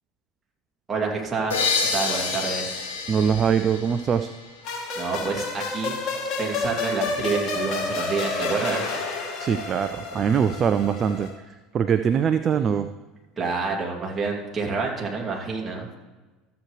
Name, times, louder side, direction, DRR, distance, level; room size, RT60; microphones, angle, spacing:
voice 1, 0.9-1.5 1.9-2.7 5.0-6.0 6.4-9.0 13.4-15.9, right 4 dB, 25° right, -2 dB, 2.7 m, -28 dB
sound 1, 1.5-5.1, left 4 dB, 80° left, 1.4 m, -28 dB
voice 2, 3.1-4.3 9.4-11.3 11.7-12.9, right 7 dB, 40° right, 11 dB, 0.4 m, -22 dB
sound 2, 4.6-11.3, left 3 dB, 50° left, 2.7 m, -30 dB
14.0 x 7.9 x 3.3 m, 1.2 s
figure-of-eight pair, 70°, 0 cm